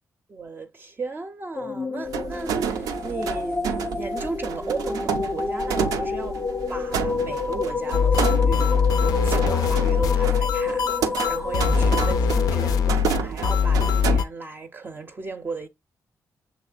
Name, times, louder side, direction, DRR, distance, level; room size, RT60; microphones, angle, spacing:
voice 1, 0.3-3.6 3.9-6.4 6.7-8.7 9.2-15.7, right 4 dB, 35° right, 0.5 m, -35 dB
sound 1, 1.5-12.9, left 4 dB, 30° left, 0.5 m, -29 dB
sound 2, 2.1-14.2, right 7 dB, 90° right, 0.4 m, -30 dB
sound 3, 7.9-14.2, left 6 dB, 90° left, 0.4 m, -22 dB
6.0 x 3.1 x 2.3 m
cardioid pair, 75°, 6 cm